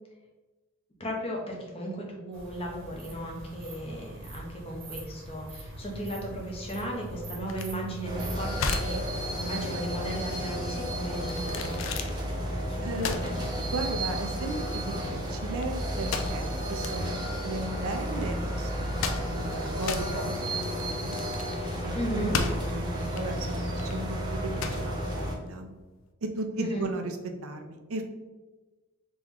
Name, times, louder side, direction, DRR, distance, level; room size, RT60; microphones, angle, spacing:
voice 1, 1.0-11.8 12.7-13.4 21.9-22.4 26.6-26.9, equal, 25° left, -1 dB, 0.8 m, -36 dB
sound 1, 2.3-8.5, right 1 dB, 60° right, 1.0 m, -42 dB
sound 2, 7.5-26.0, left 4 dB, 65° left, 0.4 m, -37 dB
sound 3, 8.0-25.3, equal, 20° right, 0.8 m, -32 dB
voice 2, 12.8-13.2 13.7-21.2 21.8-24.5 24.8-25.7 26.2-27.1 27.4-28.0, right 2 dB, 85° right, 5 dB, 0.5 m, -36 dB
3.5 x 3.0 x 3.5 m, 1.2 s
head